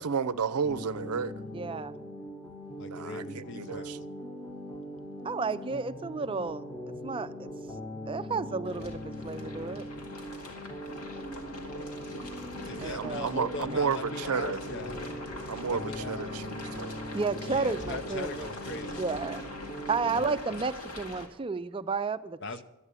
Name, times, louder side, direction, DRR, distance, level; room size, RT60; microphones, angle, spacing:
voice 1, 0.0-1.3 2.8-4.1 12.7-14.6 15.5-17.0, right 6 dB, 90° right, 0.5 m, -32 dB
sound 1, 0.6-20.2, equal, 10° left, 0.9 m, -41 dB
voice 2, 1.5-1.9 5.2-6.7 7.0-7.5 8.1-9.9 12.8-13.3 17.1-18.3 19.0-19.4 19.9-22.4, right 4 dB, 25° right, 0.4 m, -32 dB
voice 3, 2.8-4.0 12.6-15.0 15.7-16.3 17.5-19.4 20.1-20.3 22.4-22.6, left 3 dB, 55° left, 0.8 m, -40 dB
sound 2, 8.6-21.3, left 1 dB, 90° left, 2.1 m, -42 dB
13.0 x 8.8 x 8.2 m
head